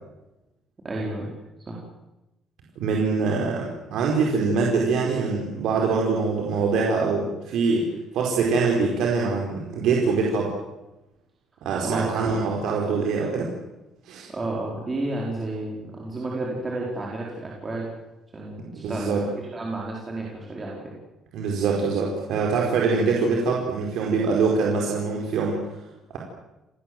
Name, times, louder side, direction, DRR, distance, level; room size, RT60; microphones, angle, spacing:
voice 1, 0.8-1.3 1.7-1.8 11.8-12.3 14.3-17.9 18.3-20.9, right 2 dB, 20° right, -3 dB, 4.6 m, -31 dB
voice 2, 2.8-7.9 8.1-10.5 11.6-13.5 14.0-14.3 18.7-19.2 21.3-25.6, right 4 dB, 65° right, -1 dB, 4.8 m, -24 dB
29.0 x 20.0 x 7.9 m, 0.97 s
cardioid pair, 180°, 0 cm